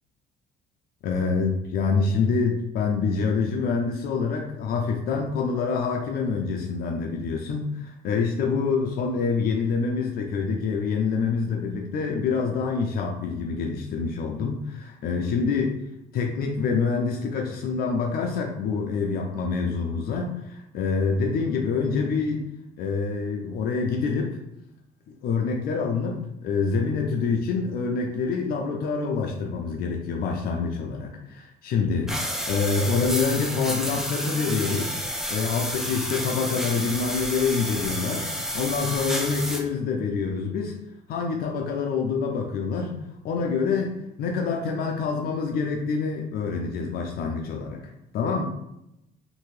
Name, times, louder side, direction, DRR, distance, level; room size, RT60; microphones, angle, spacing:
voice 1, 1.0-15.8 16.1-22.5 22.8-24.4 25.1-35.0 35.3-38.3 38.5-40.8 41.1-43.0 43.2-47.8 48.1-48.4, left 5 dB, 65° left, 1 dB, 0.5 m, -26 dB
sound 1, 32.1-39.6, equal, 5° right, 0.4 m, -30 dB
2.8 x 2.6 x 3.1 m, 0.85 s
cardioid pair, 110°, 17 cm